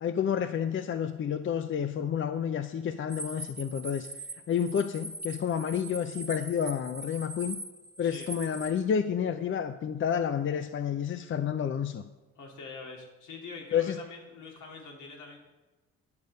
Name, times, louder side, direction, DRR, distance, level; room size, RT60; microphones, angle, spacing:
voice 1, 0.0-4.1 4.5-7.6 8.0-12.0 13.7-14.0, left 8 dB, 40° left, 10 dB, 0.6 m, -30 dB
sound 1, 3.1-8.7, right 2 dB, 15° right, 1.2 m, -41 dB
voice 2, 8.0-8.3 12.4-15.4, left 4 dB, 75° left, 0 dB, 2.7 m, -44 dB
10.5 x 6.5 x 5.3 m, 1.1 s
cardioid pair, 90°, 30 cm